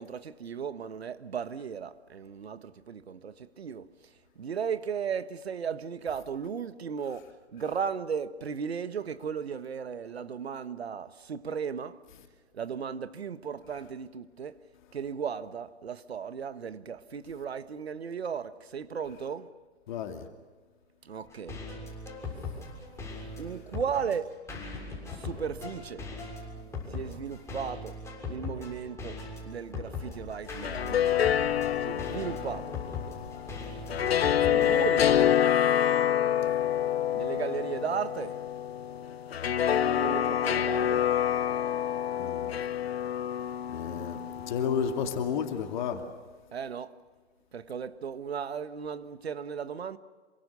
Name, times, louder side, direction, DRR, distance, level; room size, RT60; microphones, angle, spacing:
voice 1, 0.0-3.9 4.4-12.0 12.5-14.6 14.9-19.5 21.0-21.6 23.4-24.4 25.1-26.0 26.9-27.9 28.3-29.2 29.4-31.3 31.8-32.8 34.4-35.2 37.1-38.4 39.8-41.1 46.5-47.0 47.5-50.0, right 7 dB, 65° right, 1.5 m, -36 dB
voice 2, 19.9-20.3 31.6-31.7 42.1-42.6 43.7-44.2 44.5-46.0, left 7 dB, 45° left, 2.5 m, -31 dB
sound 1, 21.3-35.3, left 3 dB, 10° left, 7.1 m, -40 dB
sound 2, 30.5-45.6, left 10 dB, 65° left, 0.9 m, -27 dB
27.5 x 24.0 x 6.9 m
figure-of-eight pair, 120°, 33 cm